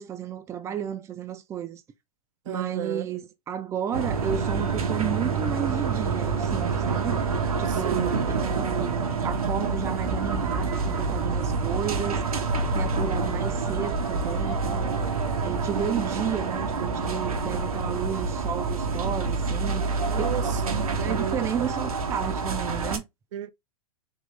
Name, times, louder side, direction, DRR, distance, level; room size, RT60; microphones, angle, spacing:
voice 1, 0.0-1.8 2.5-7.2 7.6-12.2 12.6-15.0 15.4-20.0 20.5-23.0, right 9 dB, 15° right, 0.5 m, -33 dB
voice 2, 2.5-3.0 7.7-8.2 20.0-21.7 23.3-23.5, right 9 dB, 60° right, 0.6 m, -33 dB
sound 1, 3.9-23.0, right 4 dB, 90° right, 1.2 m, -27 dB
3.8 x 3.0 x 3.2 m
hypercardioid pair, 125°, 18 cm